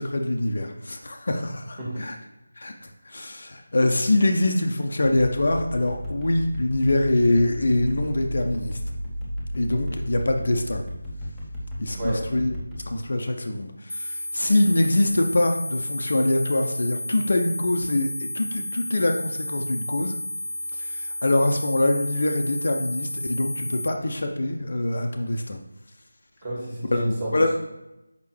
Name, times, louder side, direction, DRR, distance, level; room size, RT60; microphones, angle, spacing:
voice 1, 0.0-2.2 2.6-2.7 3.0-8.8 9.5-10.8 11.8-12.6 12.9-20.2 20.7-25.6 26.9-27.0 27.3-27.5, left 1 dB, 50° left, 3 dB, 0.5 m, -24 dB
sound 1, 5.0-12.8, equal, ahead, 0.8 m, -34 dB
sound 2, 13.9-23.9, left 1 dB, 90° left, 0.8 m, -32 dB
voice 2, 26.4-27.5, equal, 20° right, -6 dB, 1.8 m, -29 dB
6.3 x 5.2 x 3.2 m, 0.95 s
figure-of-eight pair, 160°, 0 cm